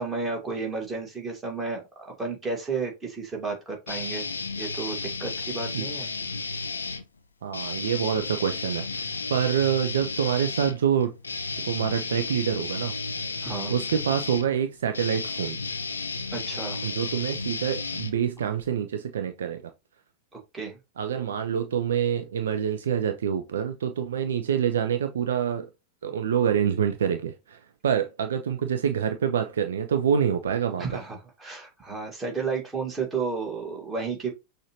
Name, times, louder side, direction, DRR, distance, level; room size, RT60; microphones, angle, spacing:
voice 1, 0.0-4.3 4.6-6.1 13.4-13.8 16.3-16.8 20.3-20.8 30.8-34.3, right 4 dB, 15° right, 1.9 m, -32 dB
sound 1, 3.9-7.0 7.5-18.7, left 4 dB, 75° left, 0.4 m, -33 dB
voice 2, 7.4-11.1 11.6-12.9 13.7-15.6 16.8-19.7 21.0-25.7 26.0-30.8, right 8 dB, 65° right, 0.5 m, -26 dB
6.3 x 2.6 x 3.0 m
figure-of-eight pair, 90°, 0 cm